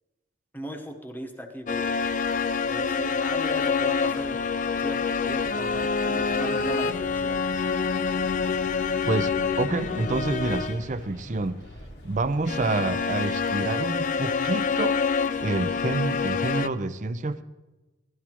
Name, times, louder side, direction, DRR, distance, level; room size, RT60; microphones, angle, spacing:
voice 1, 0.5-2.0 2.7-4.4 4.8-7.4, equal, 10° left, 4 dB, 1.0 m, -37 dB
sound 1, 1.7-10.9 12.5-16.7, left 5 dB, 45° left, 0.4 m, -26 dB
sound 2, 5.2-13.2, left 1 dB, 70° left, 1.2 m, -45 dB
voice 2, 9.1-11.6 12.0-15.0 15.4-17.4, right 3 dB, 45° right, 12 dB, 0.5 m, -28 dB
16.5 x 12.5 x 3.0 m, 1.1 s
head